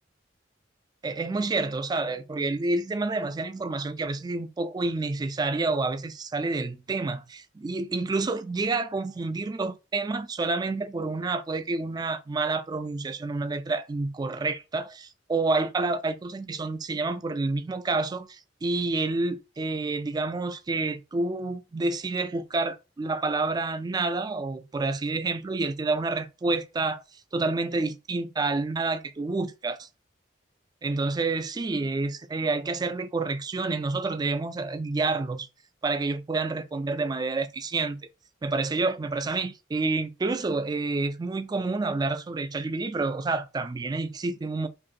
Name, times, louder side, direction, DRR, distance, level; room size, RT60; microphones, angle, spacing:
voice 1, 1.0-27.0 27.3-29.9 30.8-35.5 35.8-38.1 38.4-44.7, right 3 dB, 20° right, 0.3 m, -29 dB
2.9 x 2.6 x 3.8 m
head